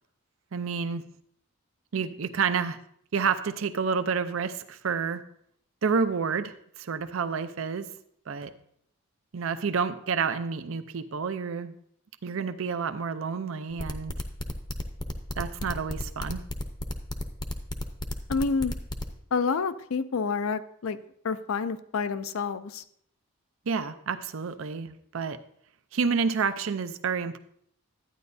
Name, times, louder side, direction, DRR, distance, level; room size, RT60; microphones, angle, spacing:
voice 1, 0.5-1.0 1.9-2.8 3.1-5.2 5.8-7.9 8.3-8.5 9.3-11.7 12.2-14.1 15.4-16.4 23.7-25.4 25.9-27.4, right 5 dB, 70° right, 11 dB, 0.5 m, -29 dB
sound 1, 13.8-19.1, left 1 dB, 20° left, 0.6 m, -33 dB
voice 2, 18.3-18.7 19.3-21.0 21.2-22.8, left 5 dB, 75° left, 13 dB, 0.5 m, -28 dB
12.0 x 9.4 x 2.6 m, 0.68 s
head